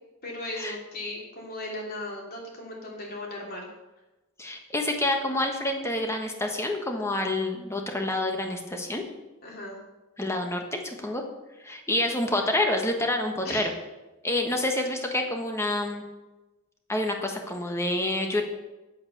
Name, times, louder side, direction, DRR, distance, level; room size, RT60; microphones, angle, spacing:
voice 1, 0.2-3.7 9.4-9.8 13.4-13.7, left 1 dB, 45° left, -2 dB, 3.0 m, -37 dB
voice 2, 4.4-9.0 10.2-11.2 11.6-13.7 14.2-16.0 16.9-18.4, left 1 dB, 15° left, 3 dB, 1.3 m, -28 dB
8.8 x 8.3 x 6.5 m, 1.1 s
head